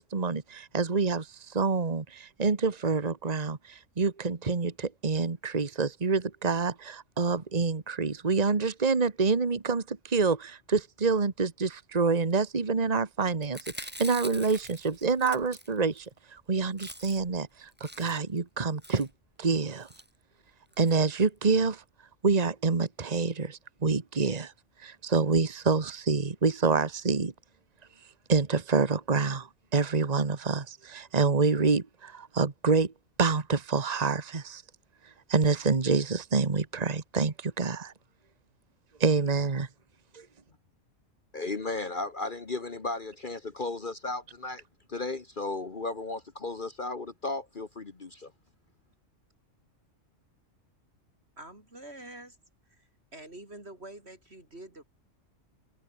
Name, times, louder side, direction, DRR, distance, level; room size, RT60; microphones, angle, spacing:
voice 1, 0.0-19.1 19.4-19.9 20.8-21.8 22.2-24.5 24.8-27.3 28.3-32.9 33.2-34.6 35.3-37.9 39.0-39.7 40.1-40.2, right 4 dB, 30° right, 1.6 m, -27 dB
Chewing mastication, 13.4-16.1 16.4-16.5 16.7-17.4 17.7-18.4 18.8-19.1 19.8-20.1 20.7-20.9 21.3-21.4 21.6-21.7, equal, 5° right, 5.3 m, -44 dB
voice 2, 41.3-44.6 44.9-48.3, left 3 dB, 40° left, 1.6 m, -35 dB
voice 3, 51.4-52.4 52.7-54.8, right 1 dB, 55° right, 6.9 m, -46 dB
omnidirectional pair, 1.3 m